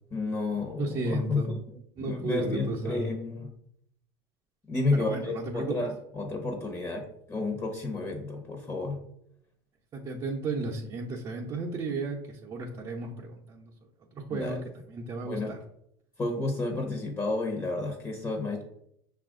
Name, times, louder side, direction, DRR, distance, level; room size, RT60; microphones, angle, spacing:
voice 1, 0.1-3.5 4.7-9.0 14.3-14.7 15.2-15.6 16.2-18.6, left 2 dB, 25° left, 2 dB, 0.9 m, -31 dB
voice 2, 0.8-1.5 2.0-3.1 4.9-5.8 9.9-13.7 14.3-14.6 14.9-15.6, right 3 dB, 35° right, -3 dB, 0.7 m, -34 dB
5.7 x 2.5 x 3.7 m, 0.74 s
hypercardioid pair, 90°, 12 cm